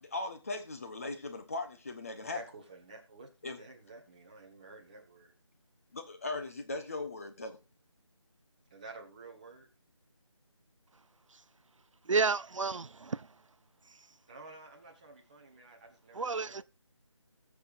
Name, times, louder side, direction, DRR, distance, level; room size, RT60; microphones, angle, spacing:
voice 1, 0.0-2.4 3.4-3.6 5.9-7.6, left 2 dB, 30° left, 1.2 m, -38 dB
voice 2, 2.3-5.3 8.7-9.7 14.3-16.6, right 3 dB, 15° right, 1.5 m, -51 dB
voice 3, 12.1-13.2 16.2-16.6, right 4 dB, 75° right, 0.5 m, -30 dB
20.5 x 7.1 x 2.6 m
figure-of-eight pair, 170°, 16 cm